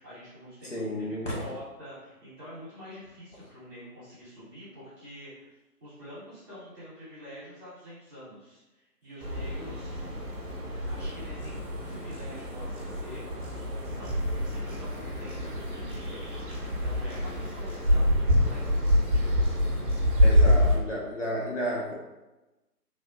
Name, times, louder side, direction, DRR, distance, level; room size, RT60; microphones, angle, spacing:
voice 1, 0.0-5.5 5.8-10.2 10.7-11.6 11.8-19.3, equal, 15° right, -14 dB, 1.3 m, -46 dB
voice 2, 0.7-1.3 20.2-21.9, equal, 50° left, -4 dB, 0.8 m, -32 dB
sound 1, 9.2-20.8, equal, 35° right, 1.2 m, -26 dB
3.5 x 2.7 x 2.3 m, 1.0 s
figure-of-eight pair, 150°, 47 cm